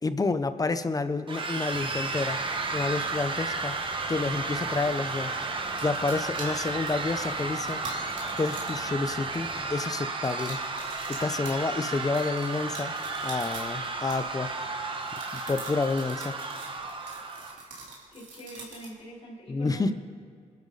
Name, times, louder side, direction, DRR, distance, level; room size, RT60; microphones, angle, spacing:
voice 1, 0.0-2.4 2.7-5.5 5.8-7.8 8.4-10.6 11.1-12.9 13.2-14.5 15.3-16.4 19.5-19.9, left 3 dB, 30° left, 11 dB, 0.8 m, -29 dB
sound 1, 1.3-17.6, right 3 dB, 45° right, 1.5 m, -33 dB
sound 2, 1.7-9.7, equal, 10° right, 1.6 m, -47 dB
sound 3, 5.7-8.9 9.2-9.6 10.1-14.6 15.0-19.0, right 3 dB, 85° right, 3.8 m, -44 dB
voice 2, 18.1-19.9, right 1 dB, 55° left, -5 dB, 4.8 m, -42 dB
27.5 x 12.0 x 4.2 m, 2.1 s
cardioid pair, 100°, 13 cm